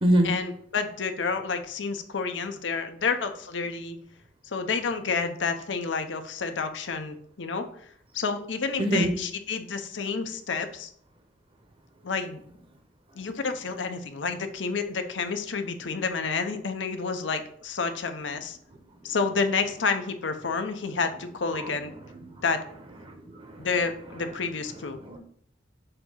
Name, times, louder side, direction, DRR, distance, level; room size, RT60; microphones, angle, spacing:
voice 1, 0.2-4.0 4.5-7.7 8.1-10.9 12.0-12.4 13.2-18.6 19.0-21.9 22.4-22.6 23.6-25.0, left 4 dB, 85° left, 7 dB, 0.7 m, -29 dB
voice 2, 8.8-9.1 21.5-21.6 23.1-23.5 25.1-25.2, right 1 dB, 30° right, 4 dB, 1.0 m, -23 dB
6.7 x 2.8 x 5.6 m, 0.63 s
head